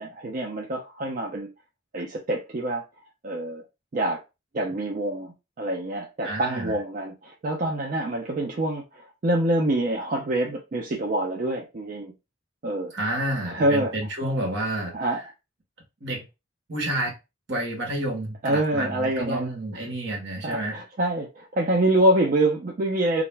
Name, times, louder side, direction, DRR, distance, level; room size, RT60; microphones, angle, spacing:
voice 1, 0.0-1.5 1.9-2.8 3.2-3.6 3.9-4.2 4.5-12.1 12.6-12.9 13.4-13.9 14.9-15.2 18.4-19.5 20.4-23.2, right 1 dB, 45° right, 0.5 m, -26 dB
voice 2, 6.2-6.8 12.9-15.2 16.0-16.2 16.7-17.1 17.5-20.8, right 1 dB, 65° right, 1.0 m, -30 dB
2.4 x 2.2 x 3.1 m
head